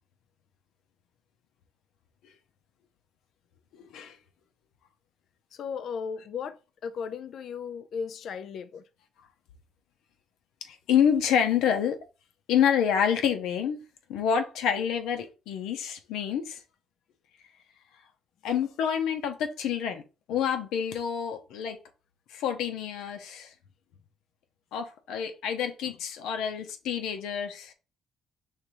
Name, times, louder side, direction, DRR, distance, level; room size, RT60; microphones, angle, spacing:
voice 1, 3.7-4.2 10.6-12.0 12.5-13.8 14.1-16.6 18.4-20.0 20.3-21.8 22.3-23.5 24.7-27.7, left 8 dB, 90° left, 0.8 m, -27 dB
voice 2, 5.5-8.8, left 6 dB, 60° left, 0.5 m, -36 dB
5.2 x 3.2 x 3.0 m
cardioid pair, 110°, 0 cm